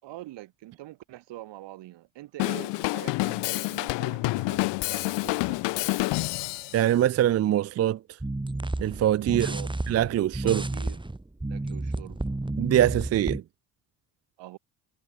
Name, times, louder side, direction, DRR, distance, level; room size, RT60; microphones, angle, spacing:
voice 1, 0.0-5.6 9.2-9.7 10.4-11.0 11.4-12.2 14.4-14.6, right 16 dB, 75° right, 4.2 m, -44 dB
Drum kit / Drum, 2.4-6.8, left 23 dB, 75° left, 0.7 m, -28 dB
voice 2, 6.7-8.0 8.8-9.5 9.9-10.6 12.6-13.4, right 12 dB, 35° right, 0.4 m, -23 dB
sound 1, 8.2-13.4, right 2 dB, 10° right, 2.1 m, -31 dB
supercardioid pair, 60°, 43 cm